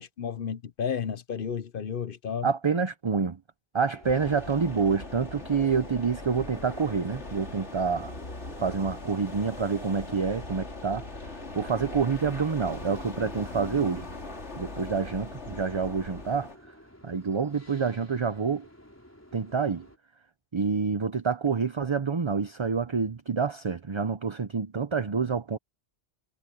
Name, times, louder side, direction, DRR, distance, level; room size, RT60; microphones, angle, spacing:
voice 1, 0.0-2.5, left 7 dB, 55° left, 0.9 m, -32 dB
voice 2, 2.4-3.4 3.7-8.1 8.6-14.1 14.6-16.5 17.0-18.7 19.3-19.9 20.5-25.6, right 5 dB, 30° right, 0.6 m, -27 dB
sound 1, 3.7-20.0, equal, 15° left, 4.6 m, -53 dB
sound 2, 4.0-16.6, left 2 dB, 80° left, 3.5 m, -40 dB
omnidirectional pair, 1.2 m